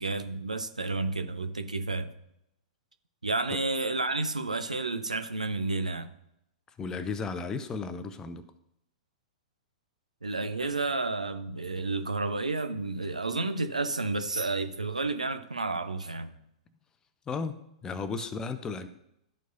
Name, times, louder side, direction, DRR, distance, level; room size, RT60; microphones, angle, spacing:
voice 1, 0.0-2.1 3.2-6.1 10.2-16.3, right 3 dB, 80° right, 0.6 m, -31 dB
voice 2, 6.8-8.5 17.3-18.9, left 4 dB, 15° left, 0.5 m, -34 dB
12.5 x 4.6 x 2.7 m
figure-of-eight pair, 105°, 4 cm